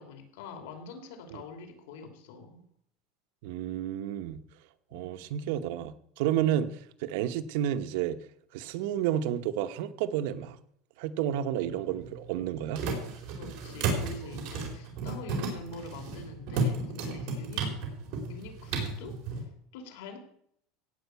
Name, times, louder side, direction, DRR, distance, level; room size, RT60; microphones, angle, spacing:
voice 1, 0.0-2.6 4.9-5.1 6.4-6.5 11.5-11.7 13.3-17.8 18.3-20.2, left 3 dB, 85° left, 2.9 m, -45 dB
voice 2, 3.4-4.4 4.9-8.2 8.5-10.6 11.0-12.8, right 11 dB, 65° right, 0.9 m, -31 dB
sound 1, 11.6-19.4, right 3 dB, 50° right, 4.1 m, -34 dB
16.5 x 5.6 x 8.1 m
supercardioid pair, 165°, 0 cm